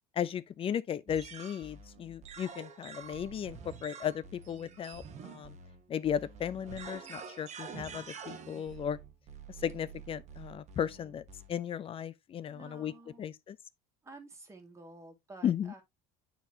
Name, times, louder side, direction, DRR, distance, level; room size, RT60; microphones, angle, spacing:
voice 1, 0.2-5.6 5.9-9.0 9.6-11.2 11.5-12.9 13.2-13.6 15.4-15.7, left 9 dB, 30° left, 0.5 m, -35 dB
sound 1, 1.1-11.6, right 6 dB, 40° right, 1.2 m, -48 dB
voice 2, 12.5-13.2 14.0-15.8, right 3 dB, 15° right, 2.0 m, -51 dB
9.1 x 4.1 x 2.8 m
supercardioid pair, 125°, 18 cm